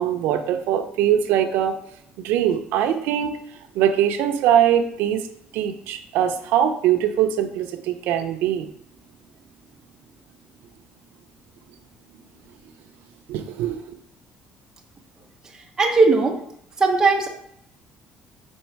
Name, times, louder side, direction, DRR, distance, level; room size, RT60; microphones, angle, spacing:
voice 1, 0.0-1.7 2.2-3.4 3.7-5.2 5.5-8.7 13.3-13.9, right 10 dB, 90° right, 6 dB, 0.5 m, -22 dB
voice 2, 15.8-16.4 16.8-17.3, right 3 dB, 20° right, 1 dB, 0.9 m, -18 dB
5.3 x 3.9 x 4.5 m, 0.70 s
cardioid pair, 175°, 3 cm